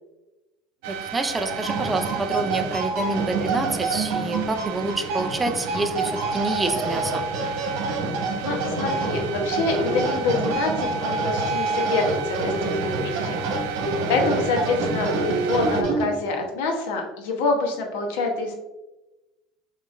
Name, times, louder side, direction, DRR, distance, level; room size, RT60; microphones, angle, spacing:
sound 1, 0.8-15.8, right 9 dB, 80° right, 0.4 m, -35 dB
voice 1, 0.9-7.3, right 2 dB, 10° right, 7 dB, 0.4 m, -27 dB
sound 2, 1.4-16.4, right 3 dB, 60° right, 1.3 m, -27 dB
voice 2, 8.4-13.4 14.1-18.5, left 3 dB, 85° left, 2 dB, 0.9 m, -26 dB
6.5 x 3.0 x 2.4 m, 1.0 s
cardioid pair, 155°, 0 cm